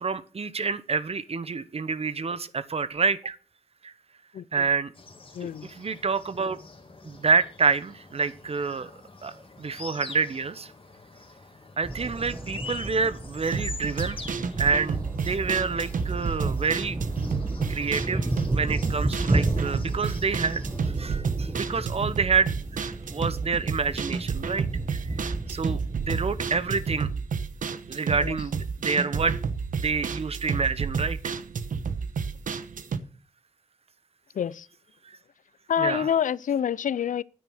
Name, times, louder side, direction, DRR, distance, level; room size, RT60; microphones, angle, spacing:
voice 1, 0.0-3.4 3.8-3.9 4.5-4.9 5.4-6.6 7.0-8.9 9.2-10.7 11.8-14.2 14.6-17.0 17.7-18.2 18.5-27.1 27.9-29.4 29.7-31.3 35.1-35.2 35.8-36.1, right 5 dB, 50° right, 1.0 m, -28 dB
sound 1, 4.9-20.9, left 4 dB, 40° left, 2.0 m, -46 dB
voice 2, 5.3-5.7 28.1-28.4 34.4-34.7 35.7-37.2, left 9 dB, 75° left, 0.4 m, -27 dB
sound 2, 11.8-27.1, right 2 dB, 25° right, 1.3 m, -33 dB
sound 3, 13.4-33.0, right 5 dB, 80° right, 1.1 m, -31 dB
9.8 x 9.1 x 6.3 m
cardioid pair, 70°, 13 cm